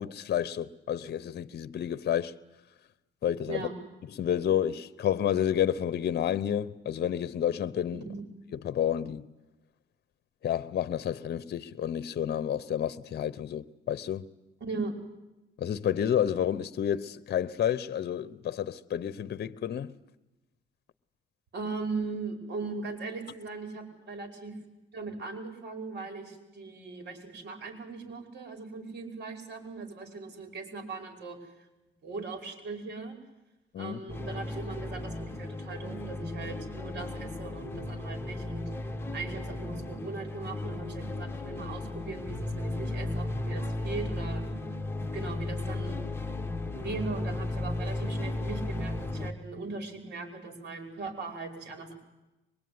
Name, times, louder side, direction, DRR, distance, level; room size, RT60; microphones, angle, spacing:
voice 1, 0.0-2.3 3.2-3.7 4.1-8.0 8.6-9.3 10.4-14.3 15.6-19.9 33.7-34.0, left 9 dB, 55° left, 0.9 m, -30 dB
voice 2, 7.9-8.2 14.6-15.0 21.5-24.6 24.9-31.4 32.0-33.2 33.8-38.7 39.1-44.4 45.1-46.0 46.7-51.9, right 3 dB, 60° right, 5.3 m, -39 dB
sound 1, 34.1-49.3, left 2 dB, 10° left, 1.9 m, -35 dB
24.0 x 21.5 x 9.6 m
cardioid pair, 90°, 20 cm